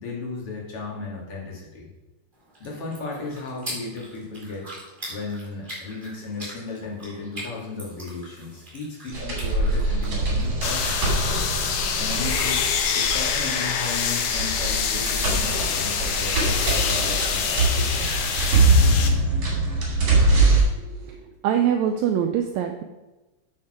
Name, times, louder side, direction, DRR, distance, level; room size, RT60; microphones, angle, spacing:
voice 1, 0.0-1.9 2.6-4.7 5.1-11.5 12.0-12.6 12.9-18.1, left 3 dB, 45° left, -3 dB, 2.7 m, -35 dB
sound 1, 2.3-18.9, equal, 15° right, 3.0 m, -43 dB
sound 2, 9.1-20.6, right 2 dB, 45° right, 3.4 m, -23 dB
sound 3, 10.6-19.1, left 7 dB, 75° left, 2.3 m, -26 dB
voice 2, 20.8-21.2 21.4-22.8, right 9 dB, 85° right, 5 dB, 1.6 m, -24 dB
8.8 x 6.7 x 4.9 m, 1.1 s
omnidirectional pair, 3.9 m